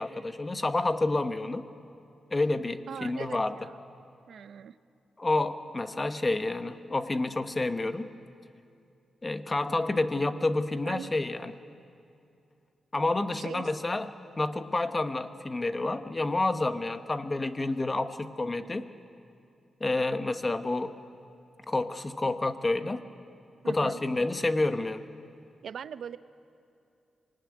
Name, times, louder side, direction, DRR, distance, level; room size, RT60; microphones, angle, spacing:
voice 1, 0.0-1.6 2.3-3.6 5.2-8.1 9.2-11.5 12.9-14.1 14.4-18.9 19.8-21.0 21.7-23.0 23.6-25.1, left 2 dB, 25° left, 10 dB, 1.0 m, -29 dB
voice 2, 2.9-3.8 4.3-4.8 10.8-11.1 13.3-13.7 23.6-24.0 25.6-26.2, right 8 dB, 75° right, 13 dB, 0.7 m, -41 dB
25.0 x 19.0 x 9.7 m, 2.6 s
wide cardioid pair, 120°, 0 cm